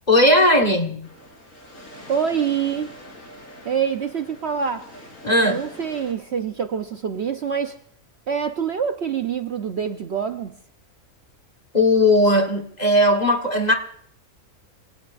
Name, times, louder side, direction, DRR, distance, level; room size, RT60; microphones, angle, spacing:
voice 1, 0.1-1.1 5.2-5.6 11.7-13.7, left 1 dB, 30° left, 3 dB, 1.4 m, -17 dB
sound 1, 1.0-6.1, left 1 dB, 60° left, 4.3 m, -44 dB
voice 2, 2.1-2.9 3.6-4.9 5.3-7.8 8.3-10.6, right 7 dB, 55° right, 7 dB, 0.9 m, -25 dB
26.0 x 17.5 x 2.5 m, 0.64 s
omnidirectional pair, 1.5 m